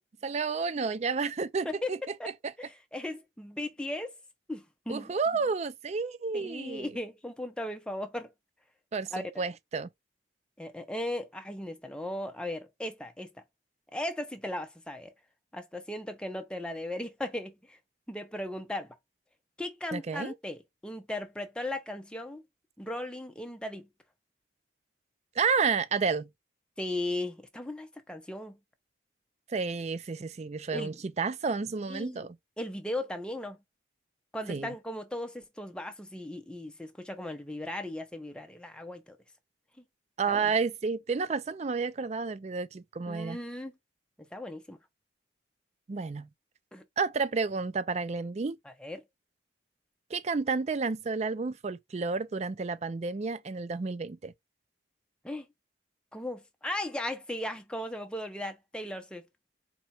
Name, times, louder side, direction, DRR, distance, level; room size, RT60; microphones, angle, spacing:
voice 1, 0.2-2.0 4.9-6.9 8.9-9.9 19.9-20.3 25.4-26.3 29.5-32.4 34.5-34.7 40.2-43.4 45.9-46.3 47.0-48.6 50.1-54.3, right 4 dB, 35° right, 0.4 m, -31 dB
voice 2, 1.6-2.3 2.6-4.1 4.5-5.1 6.3-8.3 9.1-9.5 10.6-13.3 13.9-15.1 15.5-17.8 18.1-18.9 19.6-22.4 22.8-23.9 26.8-28.6 30.7-30.9 31.9-32.3 32.6-33.6 34.3-39.2 39.8-39.9 40.3-40.5 43.1-43.7 44.2-44.8 46.7-46.8 48.6-49.0 55.2-55.5 56.1-59.2, left 1 dB, 5° left, 0.7 m, -37 dB
4.3 x 2.5 x 4.2 m
head